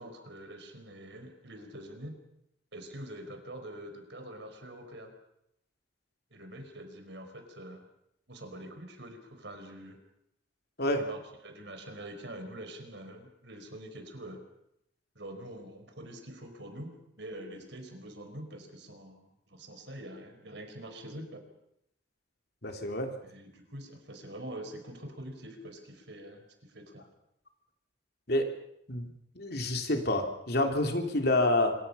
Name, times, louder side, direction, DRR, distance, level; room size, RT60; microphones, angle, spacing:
voice 1, 0.0-2.2 2.7-5.1 6.3-7.8 8.3-10.0 11.0-14.4 15.1-16.9 17.2-21.4 23.2-27.1, right 1 dB, 65° right, 6 dB, 4.8 m, -45 dB
voice 2, 22.6-23.1 28.3-28.5 28.9-29.1 29.3-31.7, left 1 dB, 55° left, 4 dB, 3.3 m, -28 dB
26.0 x 23.5 x 5.7 m, 0.78 s
head